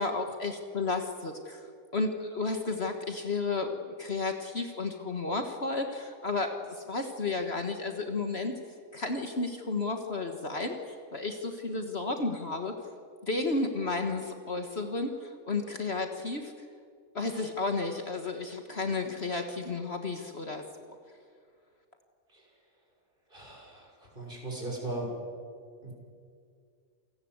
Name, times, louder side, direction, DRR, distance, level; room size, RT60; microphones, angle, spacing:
voice 1, 0.0-1.7 1.9-8.5 8.9-12.8 13.2-16.5 17.2-20.7, left 3 dB, 45° left, 5 dB, 1.7 m, -32 dB
voice 2, 23.3-23.8 24.1-25.1 25.8-25.9, right 2 dB, 35° right, -1 dB, 6.5 m, -37 dB
28.5 x 18.5 x 8.0 m, 2.2 s
omnidirectional pair, 1.5 m